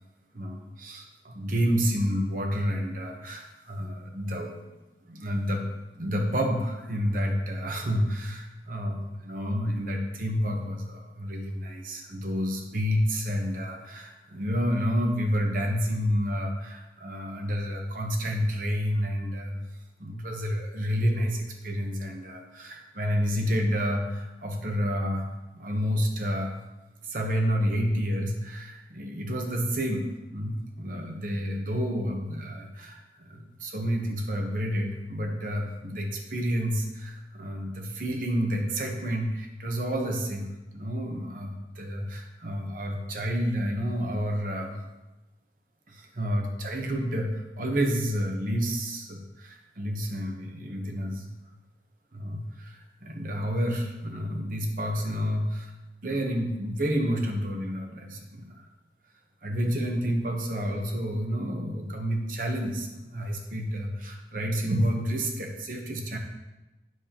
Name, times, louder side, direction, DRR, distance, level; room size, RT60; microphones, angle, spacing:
voice 1, 0.3-4.6 5.0-5.6 6.0-19.6 20.0-25.3 25.5-26.6 27.0-40.5 40.7-44.8 45.9-51.3 52.1-55.7 56.0-58.6 59.4-66.2, equal, 50° right, 2 dB, 1.0 m, -29 dB
9.2 x 6.8 x 3.0 m, 1.1 s
head